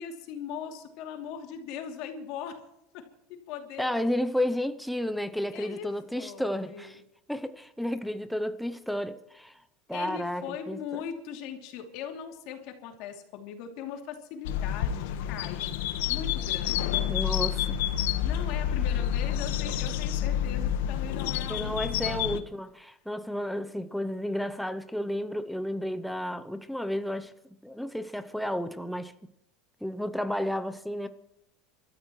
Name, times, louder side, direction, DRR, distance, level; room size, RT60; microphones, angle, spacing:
voice 1, 0.0-2.6 2.9-3.0 3.5-3.9 5.5-5.9 6.1-7.0 9.9-15.8 16.1-17.0 18.2-22.3, left 8 dB, 55° left, 2.8 m, -39 dB
voice 2, 3.8-7.0 7.3-9.6 9.9-11.0 17.0-17.8 21.5-27.3 27.6-29.1 29.8-31.1, left 1 dB, ahead, 0.6 m, -32 dB
sound 1, 14.4-22.4, left 10 dB, 75° left, 1.3 m, -29 dB
29.0 x 13.5 x 3.1 m
supercardioid pair, 155°, 0 cm